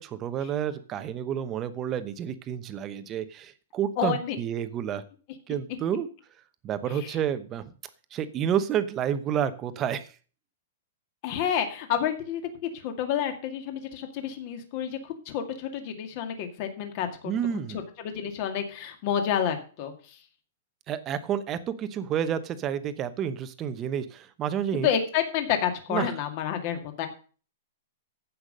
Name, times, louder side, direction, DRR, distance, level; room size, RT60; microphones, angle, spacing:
voice 1, 0.0-5.0 5.5-6.1 6.6-7.6 8.1-10.1 17.2-17.8 20.9-24.9 25.9-26.1, right 9 dB, 20° right, 12 dB, 0.9 m, -30 dB
voice 2, 4.0-4.4 5.7-5.8 7.0-7.1 11.2-17.3 17.7-20.2 24.7-27.1, left 8 dB, 35° left, 6 dB, 2.1 m, -29 dB
15.0 x 5.8 x 6.6 m, 0.39 s
hypercardioid pair, 165°, 0 cm